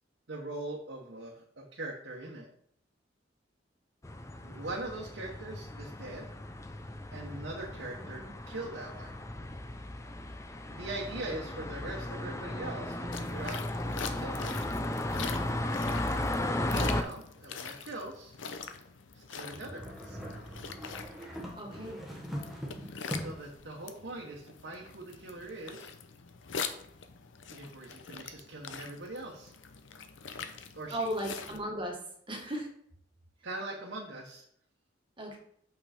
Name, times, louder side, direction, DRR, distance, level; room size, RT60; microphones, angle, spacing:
voice 1, 0.3-2.5 4.4-6.3 7.1-9.2 10.7-13.6 14.0-14.5 16.7-18.4 19.1-20.2 23.1-25.9 27.5-29.5 30.7-31.1 33.4-34.4, right 2 dB, 70° right, -3 dB, 1.1 m, -41 dB
sound 1, 4.0-17.0, left 1 dB, 15° left, 0.5 m, -35 dB
sound 2, 13.1-31.6, left 6 dB, 85° left, 0.7 m, -44 dB
sound 3, 19.5-23.6, equal, ahead, 1.2 m, -41 dB
voice 2, 21.6-22.0 30.9-32.0 32.3-32.7 35.2-35.4, equal, 25° right, 0 dB, 1.5 m, -36 dB
6.2 x 5.7 x 4.3 m, 0.67 s
head